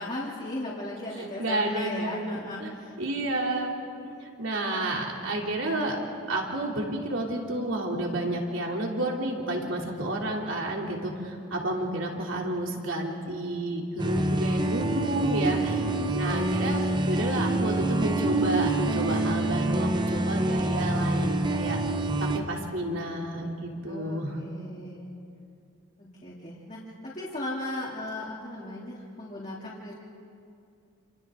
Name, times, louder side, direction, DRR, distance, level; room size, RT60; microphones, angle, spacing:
voice 1, 0.0-3.0 11.5-11.9 15.6-16.1 23.8-25.1 26.0-29.9, left 1 dB, 35° left, -6 dB, 3.0 m, -37 dB
voice 2, 1.4-2.7 3.0-3.7 4.0-6.0 6.3-15.9 16.1-21.8 22.2-24.4, right 1 dB, 70° right, -1 dB, 3.2 m, -30 dB
sound 1, 14.0-22.4, right 2 dB, 20° right, 0.9 m, -26 dB
29.0 x 28.5 x 3.8 m, 2.4 s
head